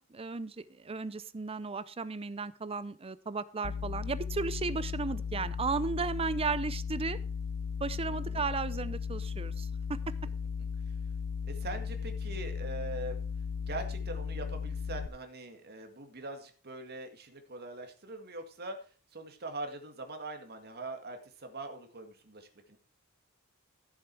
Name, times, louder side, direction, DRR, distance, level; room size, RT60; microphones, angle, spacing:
voice 1, 0.0-7.2 7.8-10.0, right 4 dB, 25° right, 16 dB, 0.5 m, -35 dB
sound 1, 3.6-15.1, left 6 dB, 85° left, 0.6 m, -36 dB
voice 2, 8.1-8.4 10.9-11.0 11.4-13.2 13.6-22.8, right 2 dB, 50° right, 5 dB, 2.1 m, -42 dB
14.0 x 7.3 x 4.7 m, 0.39 s
head